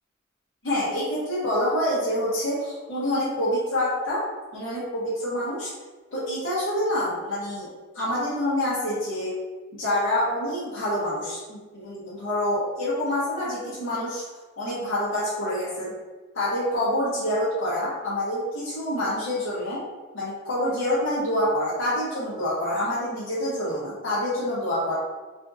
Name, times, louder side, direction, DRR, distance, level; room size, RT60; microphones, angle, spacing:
voice 1, 0.6-4.2 4.5-5.7 6.1-7.7 7.9-9.3 9.7-14.2 14.6-15.9 16.3-19.8 20.1-24.9, left 1 dB, 70° left, -10 dB, 1.0 m, -27 dB
3.5 x 2.5 x 2.5 m, 1.3 s
head